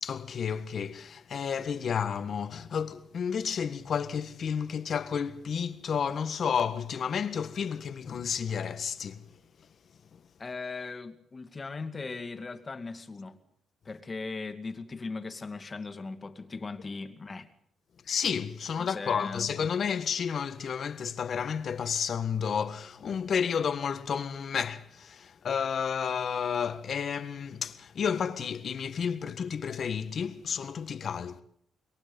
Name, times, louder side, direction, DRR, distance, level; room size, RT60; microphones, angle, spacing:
voice 1, 0.0-9.3 18.1-31.4, left 7 dB, 55° left, 1.6 m, -31 dB
voice 2, 10.4-13.4 13.8-17.5 18.8-19.5, left 3 dB, 30° left, 2.3 m, -38 dB
25.5 x 22.5 x 5.4 m
cardioid pair, 90°, 0 cm